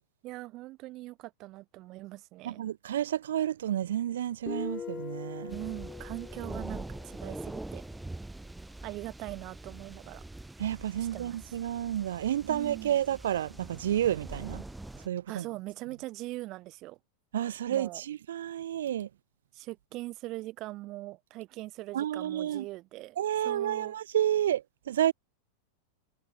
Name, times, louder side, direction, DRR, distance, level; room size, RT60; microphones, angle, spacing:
voice 1, 0.2-2.6 5.5-7.8 8.8-10.2 11.0-11.6 12.5-13.0 15.3-17.0 17.7-18.0 19.5-23.2 23.4-24.0, right 18 dB, 40° right, 1.9 m, -41 dB
voice 2, 2.4-5.6 10.6-14.6 15.0-15.5 17.3-19.1 21.9-22.6 23.2-25.1, right 11 dB, 60° right, 1.0 m, -30 dB
Guitar, 4.5-8.0, left 7 dB, 20° left, 4.3 m, -42 dB
sound 1, 5.5-15.1, right 2 dB, 5° right, 7.2 m, -44 dB
figure-of-eight pair, 90°, 0 cm